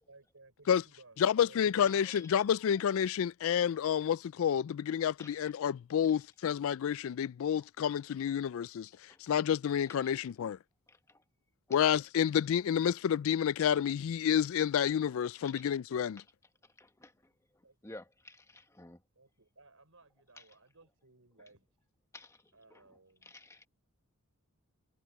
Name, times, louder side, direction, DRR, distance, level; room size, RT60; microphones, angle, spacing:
voice 1, 0.0-2.0 17.6-18.0 19.2-21.7 22.5-23.4, right 3 dB, 65° right, 5.5 m, -60 dB
voice 2, 1.2-8.9 9.3-10.6 11.7-16.2, left 8 dB, 65° left, 0.3 m, -29 dB
voice 3, 1.9-2.4 2.8-2.9 5.2-5.4 7.6-7.9 9.1-9.2 9.9-10.2 10.9-11.2 11.7-11.8 15.4-15.7 16.2-16.3 16.8-17.1 17.8-19.0 22.1-22.4 22.7-22.8 23.2-23.7, left 2 dB, 15° left, 1.5 m, -53 dB
head